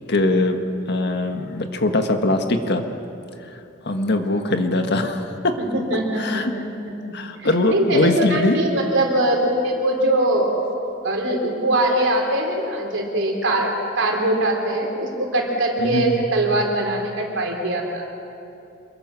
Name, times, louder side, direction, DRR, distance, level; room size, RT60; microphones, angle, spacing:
voice 1, 0.1-0.6 0.9-2.8 3.9-5.5 6.2-6.5 7.1-8.6 15.8-16.1, left 2 dB, 55° left, 5 dB, 1.7 m, -21 dB
voice 2, 5.6-6.9 7.4-10.6 11.0-18.0, right 1 dB, 65° right, 1 dB, 4.2 m, -22 dB
27.0 x 22.5 x 6.2 m, 2.7 s
head